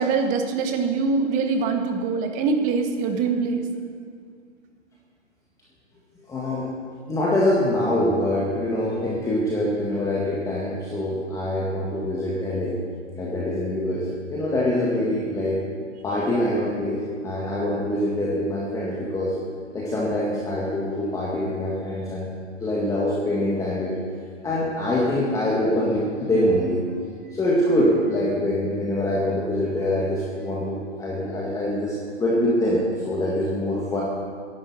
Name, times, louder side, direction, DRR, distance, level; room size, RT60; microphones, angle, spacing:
voice 1, 0.0-3.6, right 4 dB, 20° right, 5 dB, 1.2 m, -23 dB
voice 2, 6.3-6.7 7.1-12.7 13.2-15.6 16.0-19.4 19.7-22.3 22.6-23.9 24.4-26.8 27.2-34.0, left 1 dB, 10° left, -5 dB, 1.7 m, -24 dB
12.5 x 11.0 x 7.4 m, 2.1 s
hypercardioid pair, 140°, 36 cm